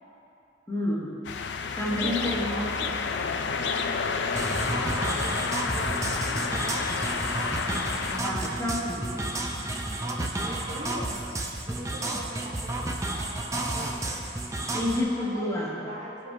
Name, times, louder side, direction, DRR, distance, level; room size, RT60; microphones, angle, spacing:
voice 1, 0.7-1.2 1.8-2.7 8.1-9.1 14.7-15.8, left 1 dB, 15° left, -4 dB, 1.0 m, -29 dB
sound 1, 1.2-8.2, left 5 dB, 80° left, 0.4 m, -30 dB
voice 2, 1.9-3.0 3.5-4.9 5.2-7.5 10.4-14.2 15.0-15.5 15.8-16.3, equal, 40° right, -2 dB, 0.9 m, -41 dB
sound 2, 4.4-15.0, right 2 dB, 20° right, 0.5 m, -31 dB
15.0 x 5.0 x 2.7 m, 2.9 s
head